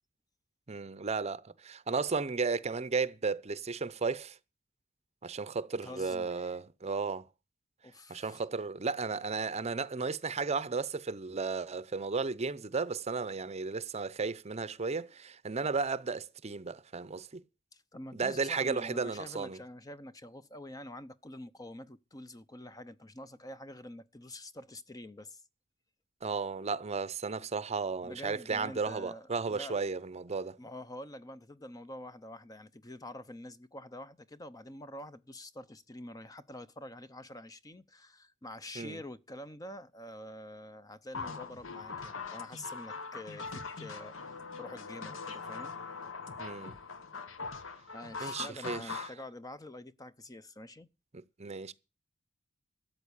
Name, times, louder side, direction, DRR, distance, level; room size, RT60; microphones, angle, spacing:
voice 1, 0.7-4.4 5.2-7.3 8.1-17.4 18.1-19.6 26.2-30.6 38.8-39.0 46.4-46.7 48.2-49.0 51.1-51.7, right 4 dB, 35° right, 0.7 m, -34 dB
voice 2, 5.8-6.6 7.8-8.4 17.7-25.4 28.0-29.8 30.6-45.8 47.9-50.9, left 1 dB, 20° left, 0.6 m, -47 dB
sound 1, 41.1-49.1, left 4 dB, 70° left, 1.3 m, -42 dB
13.5 x 7.9 x 8.3 m
head